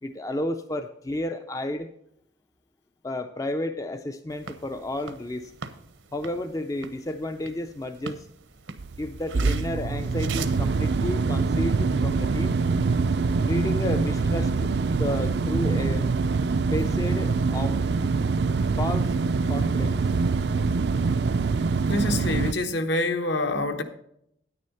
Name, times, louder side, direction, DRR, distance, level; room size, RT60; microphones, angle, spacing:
voice 1, 0.0-1.9 3.0-5.5 6.1-8.3 9.0-12.6 13.4-14.7 15.0-16.1 16.7-17.8 18.8-19.2 19.5-20.1, left 1 dB, 15° left, 0.4 m, -31 dB
sound 1, 4.3-11.0, right 6 dB, 75° right, 0.9 m, -42 dB
sound 2, 8.8-22.5, right 4 dB, 55° right, 0.4 m, -24 dB
voice 2, 21.9-23.8, left 2 dB, 60° left, 1.1 m, -26 dB
9.7 x 9.6 x 4.2 m
head